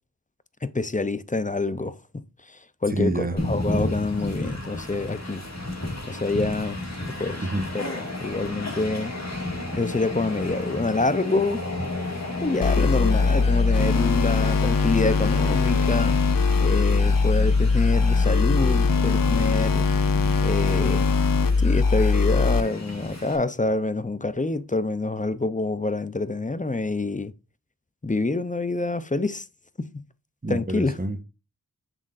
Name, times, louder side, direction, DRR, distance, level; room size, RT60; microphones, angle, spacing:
voice 1, 0.6-2.2 2.5-5.4 6.1-6.8 7.2-7.4 7.7-9.1 9.7-11.6 12.4-16.2 16.6-19.9 20.4-21.1 21.6-27.3 28.0-29.5 29.8-30.0 30.5-31.0, left 3 dB, 20° left, 0.6 m, -26 dB
voice 2, 2.9-3.3 7.4-7.7 30.4-31.2, right 1 dB, 25° right, 1.1 m, -27 dB
Train, 3.4-23.4, left 2 dB, 45° left, 2.1 m, -33 dB
sound 1, 12.6-22.6, left 4 dB, 65° left, 0.7 m, -21 dB
7.4 x 6.5 x 2.5 m
wide cardioid pair, 60°, 37 cm